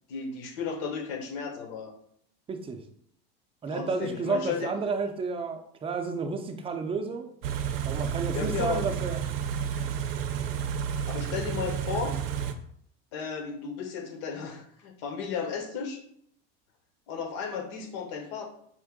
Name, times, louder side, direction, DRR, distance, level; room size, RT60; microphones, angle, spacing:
voice 1, 0.1-1.9 3.7-4.7 8.3-8.8 11.1-12.2 13.1-16.0 17.1-18.5, left 6 dB, 65° left, 4 dB, 1.0 m, -34 dB
voice 2, 2.5-2.8 3.6-7.3 7.8-9.2, right 4 dB, 20° right, 5 dB, 0.5 m, -31 dB
Car / Idling, 7.4-12.5, right 8 dB, 70° right, 0.6 m, -31 dB
4.5 x 2.5 x 3.6 m, 0.68 s
supercardioid pair, 115°, 30 cm